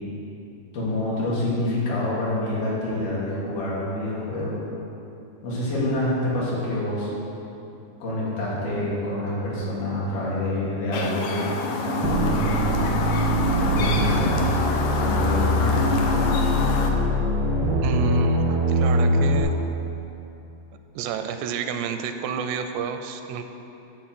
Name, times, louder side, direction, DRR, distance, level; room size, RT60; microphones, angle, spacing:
voice 1, 0.7-4.6 5.4-7.1 8.0-13.0 13.6-14.6 15.0-15.8, left 1 dB, 65° left, -7 dB, 3.7 m, -27 dB
Chirp tweet, 10.9-16.9, left 3 dB, 85° left, 2.0 m, -27 dB
sound 1, 12.0-19.4, equal, 65° right, 1.2 m, -23 dB
voice 2, 17.8-19.5 21.0-23.4, right 6 dB, 85° right, 7 dB, 2.7 m, -30 dB
11.0 x 4.1 x 7.6 m, 2.9 s
omnidirectional pair, 4.7 m